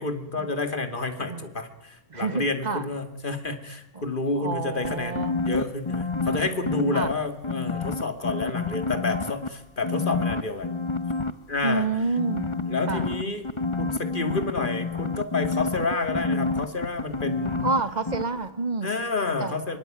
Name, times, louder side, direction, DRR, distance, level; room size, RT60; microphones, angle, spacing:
voice 1, 0.0-10.7 11.5-11.9 12.7-13.4 13.8-17.7 18.8-19.8, left 3 dB, 40° left, 7 dB, 2.7 m, -29 dB
voice 2, 2.1-2.9 3.9-4.0 4.4-5.4 6.9-7.1 11.6-12.5 12.9-13.1 17.6-18.9 19.4-19.6, right 3 dB, 35° right, 11 dB, 1.8 m, -28 dB
sound 1, 4.8-7.1 7.4-9.5 9.8-11.3 12.2-17.8 18.1-18.2, left 3 dB, 25° left, 1.1 m, -28 dB
24.0 x 24.0 x 9.3 m, 0.82 s
omnidirectional pair, 1.3 m